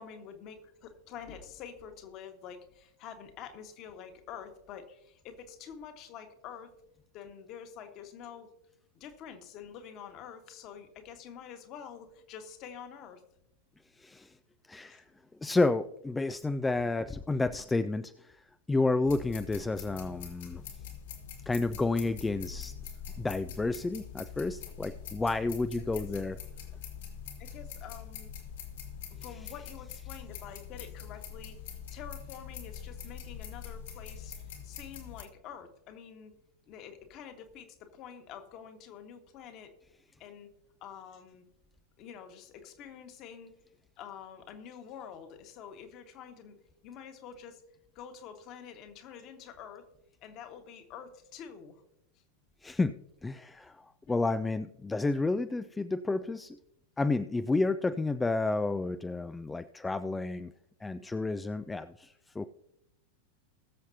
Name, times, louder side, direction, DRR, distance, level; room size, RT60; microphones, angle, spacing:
voice 1, 0.0-6.7 7.1-8.5 9.0-13.2 25.8-26.0 27.4-28.3 29.2-31.6 31.9-36.3 36.7-39.7 40.2-40.5 40.8-41.4 42.0-43.5 44.0-46.6 46.8-47.6 47.9-49.9 50.2-51.8 54.1-54.3, left 8 dB, 40° left, 6 dB, 1.6 m, -47 dB
voice 2, 14.0-14.3 14.7-15.1 15.4-20.6 21.5-22.7 23.2-26.4 52.6-56.6 57.0-60.5 60.8-62.5, left 3 dB, 10° left, 12 dB, 0.4 m, -31 dB
sound 1, 19.0-35.2, left 8 dB, 60° left, 2.5 m, -44 dB
20.5 x 7.2 x 2.8 m, 0.82 s
figure-of-eight pair, 90°, 0 cm